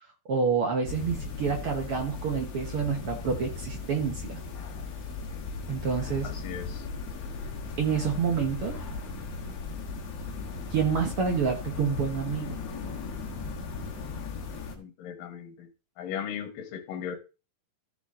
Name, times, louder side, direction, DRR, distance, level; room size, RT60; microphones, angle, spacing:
voice 1, 0.2-4.4 5.7-6.3 7.8-8.8 10.7-12.6, right 6 dB, 60° right, 1.5 m, -28 dB
sound 1, 0.9-14.8, left 4 dB, 55° left, 2.2 m, -37 dB
voice 2, 6.3-6.8 14.7-15.7 16.0-17.2, left 8 dB, 75° left, 2.8 m, -37 dB
14.0 x 5.0 x 3.7 m
omnidirectional pair, 4.1 m